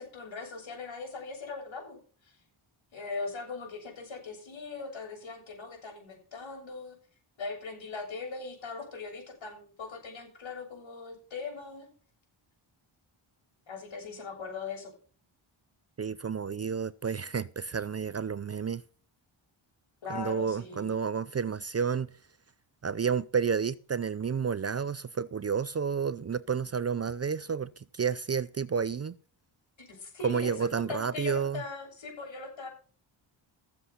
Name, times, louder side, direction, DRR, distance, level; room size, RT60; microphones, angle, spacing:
voice 1, 0.0-2.4 2.9-7.0 7.4-11.9 13.7-14.9 20.0-21.0 29.8-32.7, left 4 dB, 70° left, 7.5 m, -40 dB
voice 2, 16.0-18.8 20.1-22.1 22.8-29.2 30.2-31.6, right 6 dB, 30° right, 0.5 m, -30 dB
15.5 x 7.8 x 5.7 m
cardioid pair, 95°, 49 cm